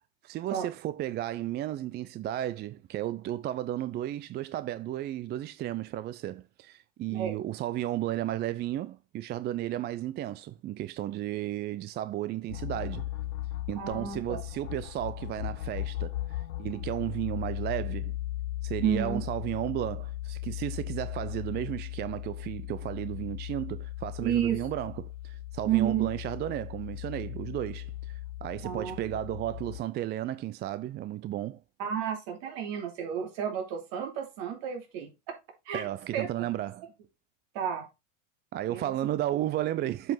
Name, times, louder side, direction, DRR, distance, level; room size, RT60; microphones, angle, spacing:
voice 1, 0.2-13.1 13.7-18.2 18.6-31.6 35.7-36.9 38.5-40.1, right 13 dB, 25° right, 0.4 m, -33 dB
sound 1, 12.5-29.8, left 14 dB, 80° left, 0.9 m, -37 dB
voice 2, 13.7-14.4 18.8-19.2 24.2-24.6 25.6-26.1 28.6-29.0 31.8-35.1 35.7-35.8 36.1-36.3 37.5-37.9 38.7-39.0, right 9 dB, 60° right, 3.0 m, -31 dB
7.6 x 5.3 x 3.9 m
hypercardioid pair, 100°, 39 cm